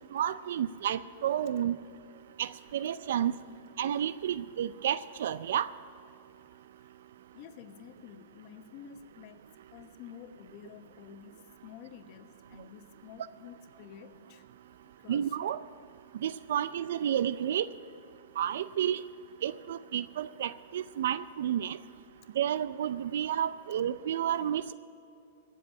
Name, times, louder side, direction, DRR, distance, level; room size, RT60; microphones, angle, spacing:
voice 1, 0.1-1.8 2.4-3.3 3.8-5.7 15.1-15.6 16.2-17.7 18.4-19.0 19.4-21.8 22.4-24.7, right 10 dB, 75° right, 16 dB, 0.4 m, -31 dB
voice 2, 7.3-15.3 21.0-21.1, left 9 dB, 45° left, 9 dB, 1.0 m, -51 dB
16.0 x 7.7 x 9.7 m, 2.7 s
hypercardioid pair, 140°, 0 cm